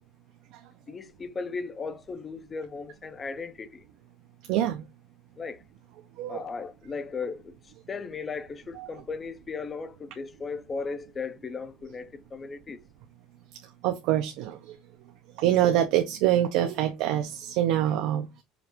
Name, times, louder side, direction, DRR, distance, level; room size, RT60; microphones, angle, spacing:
voice 1, 0.9-3.8 5.4-5.6 6.3-7.5 7.9-12.8, left 4 dB, 20° left, 0.4 m, -36 dB
voice 2, 4.5-4.8 6.2-6.4 13.8-14.8 15.4-18.4, right 12 dB, 65° right, 0.5 m, -25 dB
5.0 x 2.4 x 3.0 m
cardioid pair, 160°, 0 cm